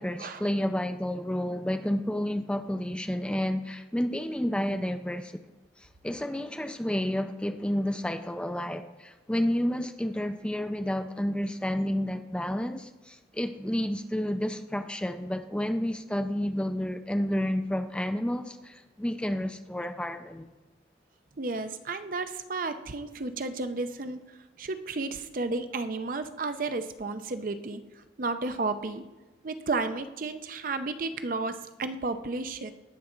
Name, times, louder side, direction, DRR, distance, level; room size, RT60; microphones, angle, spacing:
voice 1, 0.0-5.4 5.8-20.5, equal, 5° left, 8 dB, 0.4 m, -30 dB
voice 2, 21.4-27.8 28.2-29.1 29.4-32.7, right 3 dB, 50° right, 9 dB, 0.6 m, -32 dB
17.5 x 5.9 x 3.8 m, 1.2 s
head